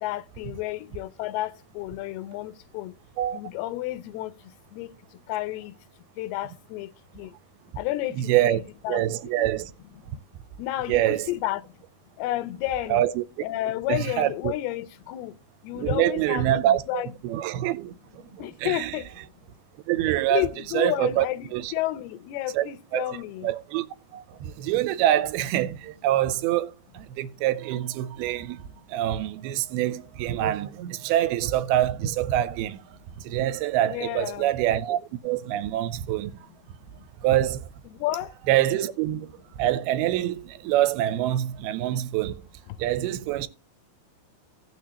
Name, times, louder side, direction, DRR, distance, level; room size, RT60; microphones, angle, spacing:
voice 1, 0.0-2.9 3.3-4.3 4.7-4.9 5.3-5.7 6.2-6.9 7.2-7.3 7.8-9.0 9.4-9.5 10.6-11.6 12.2-13.0 13.4-15.3 15.6-17.1 18.4-19.1 20.0-23.5 33.9-34.5 37.9-38.3, left 16 dB, 90° left, 2.7 m, -31 dB
voice 2, 8.2-8.6 8.9-9.7 10.9-11.3 12.9-13.2 13.9-14.5 15.8-18.9 19.9-20.5 20.7-21.3 21.5-21.7 22.5-22.7 22.9-23.9 24.1-32.8 33.2-36.3 37.2-37.6 38.5-39.3 39.6-42.4 42.8-43.5, right 13 dB, 90° right, 2.6 m, -25 dB
16.5 x 6.3 x 2.8 m
omnidirectional pair, 4.4 m